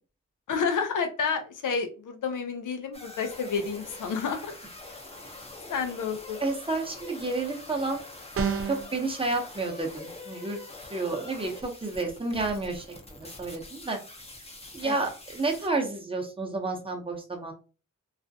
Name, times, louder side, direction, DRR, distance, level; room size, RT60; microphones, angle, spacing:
voice 1, 0.5-4.6 5.7-6.4 14.8-14.9, left 5 dB, 80° left, 6 dB, 0.5 m, -30 dB
sound 1, 2.9-15.7, left 2 dB, 20° left, 0.6 m, -45 dB
voice 2, 6.4-8.0 8.7-10.6 10.9-12.8 13.2-14.0 14.7-17.5, right 3 dB, 15° right, 1 dB, 0.7 m, -30 dB
sound 2, 8.3-8.9, right 6 dB, 45° right, 0.4 m, -28 dB
2.4 x 2.1 x 2.6 m, 0.34 s
wide cardioid pair, 65°, 31 cm